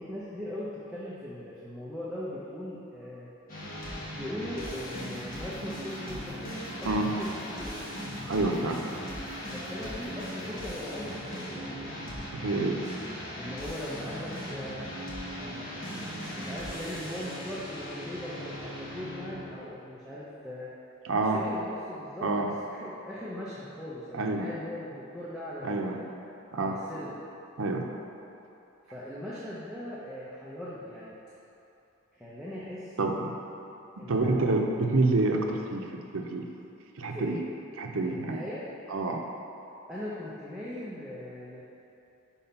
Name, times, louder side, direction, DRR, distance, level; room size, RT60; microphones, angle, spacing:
voice 1, 0.0-3.3 4.1-7.9 9.5-12.0 13.4-14.9 15.3-16.1 16.4-20.7 21.3-26.0 26.6-27.2 28.8-31.2 32.1-33.3 34.0-34.4 37.1-37.4 38.0-38.6 39.9-41.6, left 1 dB, 5° right, -9 dB, 0.7 m, -40 dB
sound 1, 3.5-19.5, equal, 40° left, 1.4 m, -38 dB
voice 2, 8.2-8.8 12.3-12.8 21.0-21.4 22.2-22.5 24.1-24.5 25.6-26.0 26.5-26.8 27.6-27.9 33.0-33.3 34.1-36.5 37.0-37.4 37.8-38.4 38.9-39.2, right 2 dB, 80° right, 2 dB, 0.6 m, -28 dB
5.6 x 4.3 x 5.6 m, 2.9 s
head